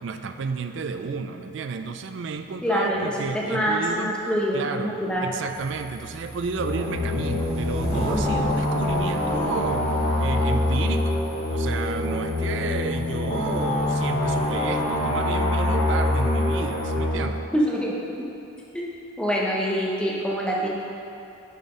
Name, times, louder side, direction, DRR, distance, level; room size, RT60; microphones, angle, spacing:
voice 1, 0.0-4.1 4.5-4.9 5.2-9.9 10.2-11.1 11.5-17.4, right 5 dB, 60° right, 8 dB, 0.4 m, -32 dB
voice 2, 2.6-3.0 3.3-5.3 17.1-17.2 17.5-17.9 18.7-18.8 19.2-20.7, equal, 5° left, -4 dB, 0.8 m, -25 dB
sound 1, 5.5-16.9, equal, 30° right, 1.1 m, -36 dB
sound 2, 6.6-17.1, left 1 dB, 35° left, 1.0 m, -25 dB
6.8 x 4.3 x 4.9 m, 2.7 s
head